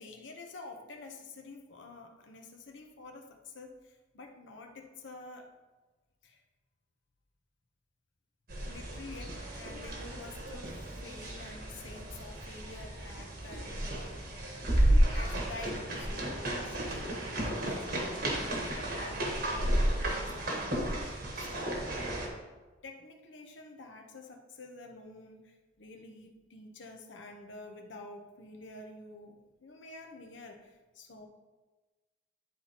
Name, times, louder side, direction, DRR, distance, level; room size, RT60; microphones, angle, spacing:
voice 1, 0.0-5.5 6.2-6.4 8.6-14.3 15.1-21.7 22.8-29.3 29.6-31.3, left 3 dB, 80° left, 3 dB, 0.9 m, -49 dB
sound 1, 8.5-22.3, right 1 dB, 55° right, 1.3 m, -32 dB
11.0 x 4.1 x 2.9 m, 1.2 s
head